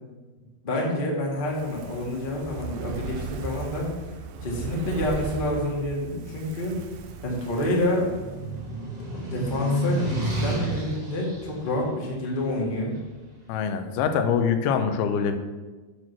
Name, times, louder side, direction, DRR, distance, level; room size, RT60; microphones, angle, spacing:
voice 1, 0.6-3.9 4.4-6.8 7.2-8.1 9.1-12.9, left 1 dB, 45° left, -2 dB, 0.6 m, -28 dB
Fire, 1.4-8.8 9.1-9.2, right 4 dB, 75° right, 2.2 m, -37 dB
sound 1, 7.0-13.1, right 1 dB, 50° right, 0.4 m, -31 dB
voice 2, 13.5-15.4, left 7 dB, 80° left, 8 dB, 2.6 m, -24 dB
8.6 x 6.2 x 6.1 m, 1.3 s
omnidirectional pair, 4.6 m